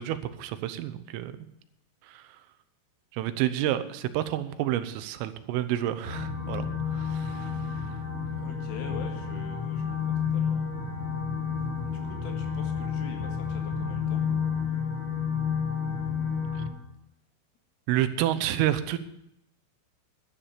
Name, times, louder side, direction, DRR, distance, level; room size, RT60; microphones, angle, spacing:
voice 1, 0.0-1.3 2.1-2.2 3.1-7.5 17.9-19.0, right 12 dB, 85° right, 11 dB, 3.5 m, -29 dB
sound 1, 6.0-16.7, left 6 dB, 15° left, 3.0 m, -30 dB
voice 2, 8.3-9.8 10.3-10.6 11.8-14.2, left 7 dB, 85° left, 3 dB, 4.5 m, -44 dB
12.0 x 10.0 x 6.6 m, 0.80 s
omnidirectional pair, 5.7 m